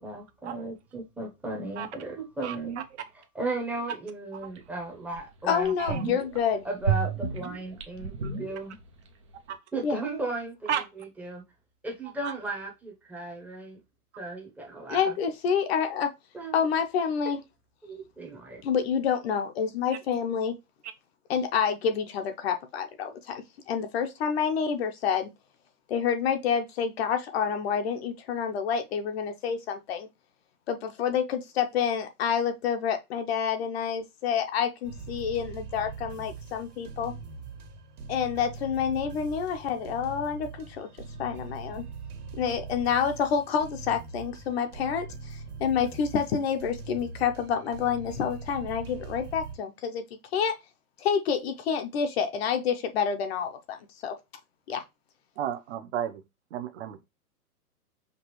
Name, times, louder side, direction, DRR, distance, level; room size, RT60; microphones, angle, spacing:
voice 1, 0.0-2.8 3.1-6.2 6.6-8.8 9.7-11.4 11.8-13.8 14.2-15.2 16.3-16.6 17.8-18.6, right 2 dB, 5° right, 0.7 m, -36 dB
sound 1, 4.6-4.7 5.1-5.2 5.6-6.4 6.8-9.1 9.3-9.4, right 7 dB, 25° right, 0.3 m, -31 dB
voice 2, 5.4-6.7 9.8-10.0 14.9-16.1 16.5-17.4 18.6-20.5 21.3-25.3 25.9-30.1 30.7-37.1 38.1-40.9 41.2-41.8 42.4-50.0 50.3-50.5 51.0-53.8 54.0-54.1 54.7-54.8, left 7 dB, 40° left, 0.7 m, -28 dB
sound 2, 34.8-49.5, right 4 dB, 75° right, 1.6 m, -42 dB
voice 3, 55.4-56.2 56.5-57.0, right 10 dB, 50° right, 0.7 m, -32 dB
5.2 x 2.4 x 3.0 m
hypercardioid pair, 135°, 46 cm